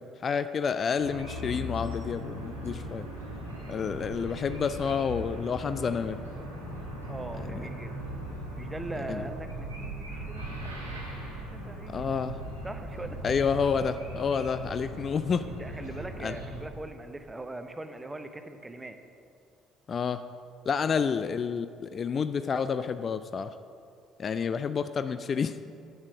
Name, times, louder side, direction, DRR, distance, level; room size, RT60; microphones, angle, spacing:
voice 1, 0.0-3.1 3.7-6.2 9.1-9.2 11.6-12.4 13.2-15.5 16.2-16.4 19.9-20.2 20.7-23.5 24.2-25.6, left 6 dB, 40° left, 12 dB, 0.3 m, -29 dB
sound 1, 1.0-16.7, equal, 85° right, 1.3 m, -39 dB
voice 2, 7.1-8.0 8.6-12.2 12.6-13.2 15.5-19.0 20.9-21.0, right 2 dB, 15° right, 8 dB, 0.8 m, -41 dB
8.3 x 7.3 x 6.1 m, 2.4 s
figure-of-eight pair, 50°, 0 cm